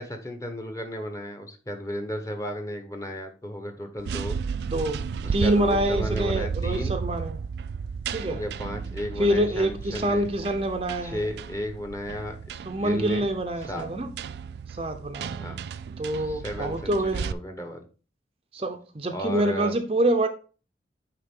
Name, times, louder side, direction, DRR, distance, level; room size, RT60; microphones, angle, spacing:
voice 1, 0.0-4.4 5.2-6.9 8.2-10.3 11.0-12.4 12.8-13.3 13.7-13.9 15.4-15.6 16.2-17.8 19.1-19.7, equal, 20° left, 1.0 m, -34 dB
sound 1, 4.0-17.3, right 6 dB, 70° right, 0.3 m, -34 dB
voice 2, 4.7-5.0 5.3-7.4 8.1-8.4 9.2-11.3 12.6-14.1 14.7-15.4 16.0-17.2 18.5-20.3, right 1 dB, 30° right, 0.6 m, -26 dB
9.4 x 3.7 x 3.6 m
head